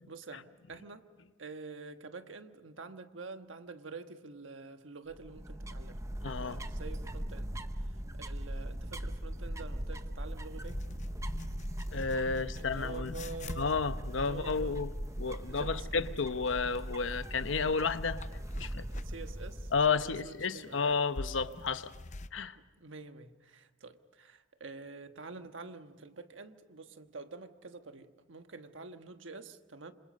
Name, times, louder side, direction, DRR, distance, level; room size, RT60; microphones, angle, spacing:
voice 1, 0.1-1.0 1.4-6.0 6.4-10.8 12.3-13.8 14.2-14.8 15.4-16.1 18.6-20.8 22.5-29.9, right 4 dB, 85° right, 8 dB, 1.3 m, -47 dB
sound 1, 5.1-20.3, right 1 dB, 15° right, 0.8 m, -40 dB
voice 2, 6.2-6.6 11.9-13.1 13.6-14.9 15.2-18.2 18.6-18.8 19.7-21.9 22.3-22.6, left 5 dB, 80° left, 11 dB, 0.9 m, -32 dB
sound 2, 10.6-22.3, left 2 dB, 40° left, 0.6 m, -48 dB
27.0 x 26.5 x 5.4 m, 1.3 s
head